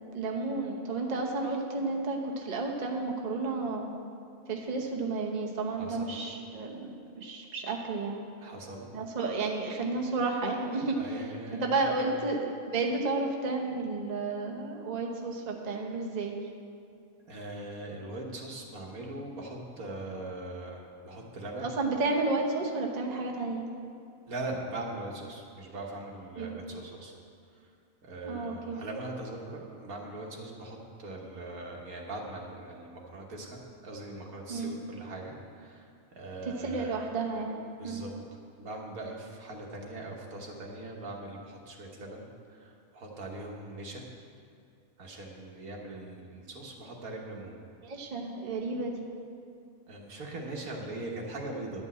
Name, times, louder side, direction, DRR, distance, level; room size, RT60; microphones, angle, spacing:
voice 1, 0.1-3.9 4.5-8.2 8.9-11.3 11.6-16.4 21.6-23.6 26.4-26.6 28.2-28.8 34.5-34.8 36.4-38.0 47.8-49.1, right 3 dB, 35° right, 0 dB, 0.9 m, -32 dB
voice 2, 5.8-6.3 8.4-8.9 11.0-12.1 17.3-21.7 24.3-27.1 28.0-36.9 37.8-38.1 38.6-44.1 45.0-47.6 49.9-51.8, right 2 dB, 75° right, -1 dB, 1.8 m, -41 dB
11.0 x 5.5 x 8.2 m, 2.4 s
omnidirectional pair, 1.5 m